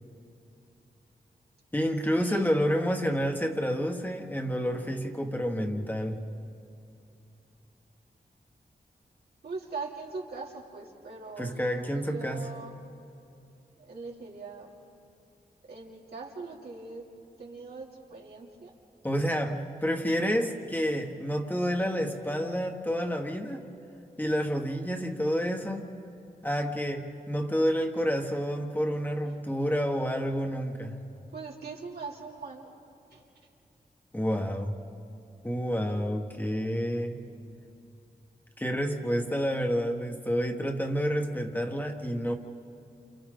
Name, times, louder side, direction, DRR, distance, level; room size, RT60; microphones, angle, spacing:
voice 1, 1.7-6.2 11.4-12.5 19.0-23.7 24.2-25.9 26.4-31.0 34.1-34.8 35.4-37.3 38.6-42.4, equal, 10° left, 3 dB, 1.4 m, -29 dB
voice 2, 9.4-12.7 13.8-14.7 15.7-17.1 17.4-18.7 31.3-32.7 33.1-33.2, right 4 dB, 90° right, -3 dB, 3.0 m, -41 dB
29.0 x 28.5 x 3.8 m, 2.7 s
wide cardioid pair, 95°, 16 cm